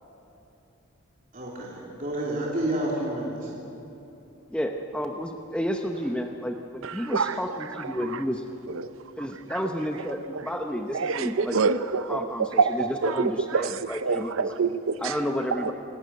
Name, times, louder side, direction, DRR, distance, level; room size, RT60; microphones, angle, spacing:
voice 1, 1.3-3.5 5.9-6.0, right 1 dB, 40° right, -4 dB, 3.2 m, -30 dB
voice 2, 4.5-8.4 9.2-11.5 12.1-14.5 15.0-15.7, equal, 5° left, 4 dB, 0.8 m, -31 dB
voice 3, 6.8-8.2 8.7-8.9 9.5-9.6 10.3-10.4 10.9-15.2 15.5-15.7, right 5 dB, 80° right, 12 dB, 0.6 m, -27 dB
26.5 x 12.0 x 9.3 m, 3.0 s
head